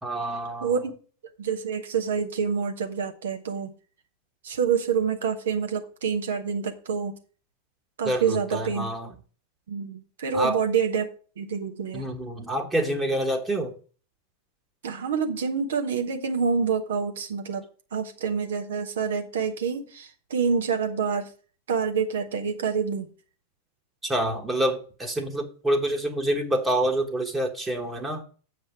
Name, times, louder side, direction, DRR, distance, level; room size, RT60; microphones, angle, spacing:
voice 1, 0.0-0.7 8.0-9.1 10.3-10.6 11.9-13.7 24.0-28.2, right 1 dB, 10° right, 1.3 m, -27 dB
voice 2, 0.6-0.9 1.4-3.7 4.4-7.1 8.0-8.9 9.7-11.1 11.4-12.1 14.8-17.6 17.9-21.3 21.7-23.1, right 6 dB, 60° right, 1.1 m, -27 dB
7.8 x 5.4 x 5.9 m
figure-of-eight pair, 90°, 0 cm